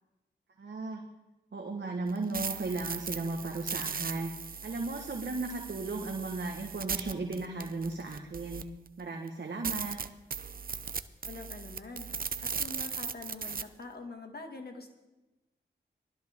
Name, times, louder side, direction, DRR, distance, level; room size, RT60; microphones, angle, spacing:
voice 1, 0.6-1.0 1.5-8.6 9.0-10.0, right 3 dB, 65° right, 2 dB, 1.4 m, -36 dB
sound 1, 2.1-8.9 9.3-9.4 9.6-13.6, right 6 dB, 50° right, 0.7 m, -38 dB
voice 2, 11.3-12.1 12.6-14.9, left 3 dB, 55° left, 4 dB, 2.0 m, -44 dB
19.0 x 12.5 x 3.7 m, 1.1 s
cardioid pair, 50°, 19 cm